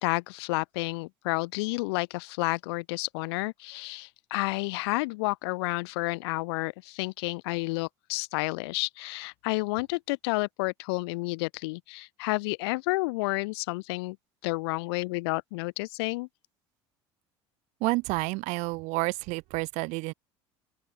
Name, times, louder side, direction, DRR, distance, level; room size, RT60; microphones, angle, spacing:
voice 1, 0.0-14.2 14.4-16.3, left 25 dB, 75° left, 0.5 m, -30 dB
voice 2, 17.8-20.1, right 25 dB, 65° right, 0.4 m, -29 dB
open air
hypercardioid pair, 80°, 13 cm